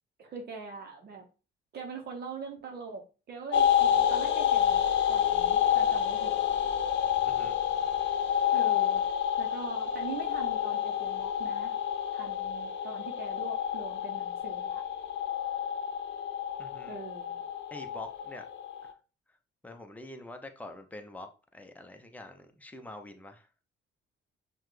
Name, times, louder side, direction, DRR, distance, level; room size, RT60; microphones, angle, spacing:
voice 1, 0.2-1.3 1.7-6.4 8.5-9.0 9.4-11.8 12.1-14.8 16.9-17.4, right 4 dB, 55° right, 0.7 m, -42 dB
sound 1, 3.5-18.9, left 9 dB, 70° left, 0.6 m, -29 dB
voice 2, 7.2-7.6 16.6-16.9 17.7-18.5 18.8-18.9 19.6-23.5, left 1 dB, 10° left, 0.6 m, -46 dB
5.7 x 2.2 x 3.1 m
cardioid pair, 90°, 20 cm